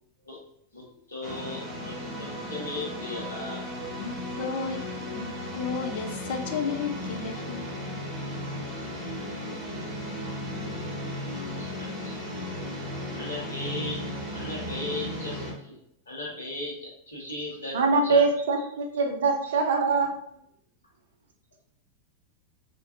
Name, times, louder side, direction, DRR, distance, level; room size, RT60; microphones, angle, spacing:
voice 1, 0.7-3.6 11.5-12.5 13.1-14.0 14.3-15.8 16.1-17.8 18.0-18.3, left 2 dB, 75° left, 0.9 m, -37 dB
sound 1, 1.2-15.5, left 1 dB, 35° right, 1.0 m, -35 dB
voice 2, 3.9-7.7, left 5 dB, 50° left, 0.3 m, -33 dB
voice 3, 17.7-20.1, right 4 dB, 60° right, 0.4 m, -23 dB
2.5 x 2.2 x 2.5 m
figure-of-eight pair, 90°, 0 cm